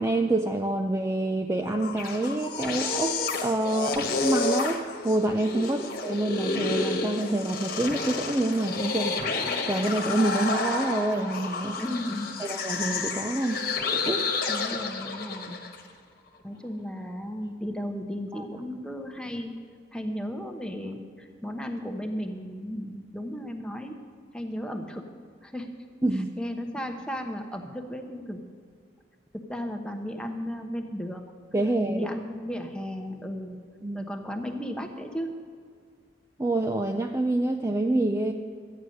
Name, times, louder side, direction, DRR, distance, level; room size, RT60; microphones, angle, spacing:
voice 1, 0.0-9.2 9.6-11.8 12.4-13.6 13.9-14.4 18.3-18.4 26.0-26.3 31.5-32.1 33.8-34.1 36.4-38.3, right 1 dB, 15° right, 4 dB, 0.5 m, -27 dB
sound 1, 1.7-15.8, left 3 dB, 50° left, 1.4 m, -30 dB
voice 2, 11.8-12.5 14.5-15.6 16.4-19.5 19.9-24.0 24.3-25.1 25.4-25.7 26.1-28.4 29.3-31.3 31.9-33.6 33.9-35.3, equal, 5° left, 4 dB, 1.0 m, -35 dB
13.0 x 9.2 x 6.4 m, 2.1 s
head